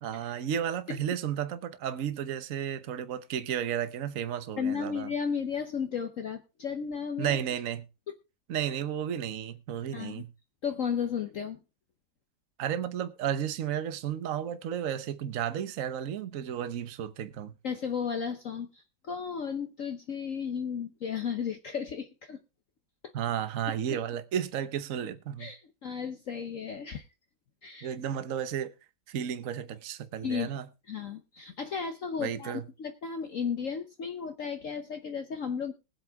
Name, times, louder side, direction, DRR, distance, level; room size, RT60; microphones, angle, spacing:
voice 1, 0.0-5.1 7.2-7.8 8.5-10.3 12.6-17.5 23.1-25.5 27.8-28.7 29.1-30.7 32.2-32.6, right 9 dB, 55° right, 1.2 m, -33 dB
voice 2, 4.6-7.4 9.9-10.2 10.6-11.6 17.6-22.4 23.9-24.0 25.4-27.0 27.6-27.9 30.2-30.5 30.9-35.7, left 6 dB, 55° left, 1.2 m, -34 dB
20.5 x 7.9 x 3.5 m
omnidirectional pair, 1.9 m